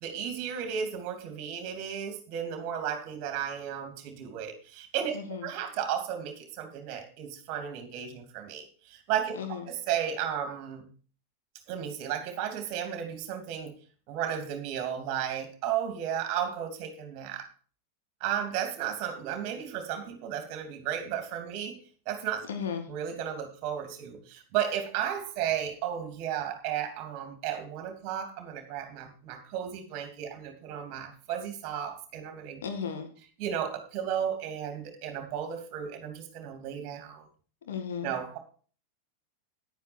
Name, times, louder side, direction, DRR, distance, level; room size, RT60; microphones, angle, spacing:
voice 1, 0.0-9.4 9.9-10.9 11.7-13.8 14.1-17.5 18.2-21.8 22.1-22.5 22.9-32.6 33.4-37.3 38.0-38.4, right 9 dB, 40° right, 6 dB, 2.9 m, -34 dB
voice 2, 5.1-5.5 9.3-9.7 22.4-22.9 32.6-33.1 37.6-38.2, left 7 dB, 60° left, 6 dB, 2.0 m, -35 dB
10.5 x 9.5 x 4.5 m, 0.41 s
figure-of-eight pair, 90°, 0 cm